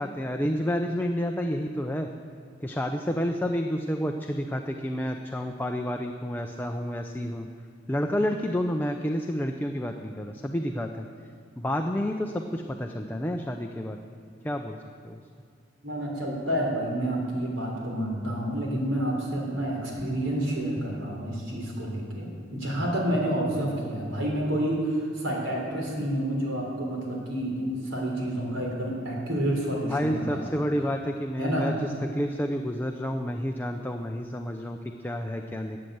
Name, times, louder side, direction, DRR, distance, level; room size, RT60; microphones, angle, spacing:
voice 1, 0.0-2.1 2.6-7.5 7.9-11.1 11.6-14.0 14.4-14.8 15.0-15.2 23.5-23.6 29.9-31.7 32.1-35.8, equal, 10° left, 3 dB, 0.5 m, -29 dB
voice 2, 15.8-30.6 31.4-31.7, right 1 dB, 80° right, -1 dB, 3.6 m, -29 dB
13.0 x 8.7 x 7.8 m, 2.1 s
head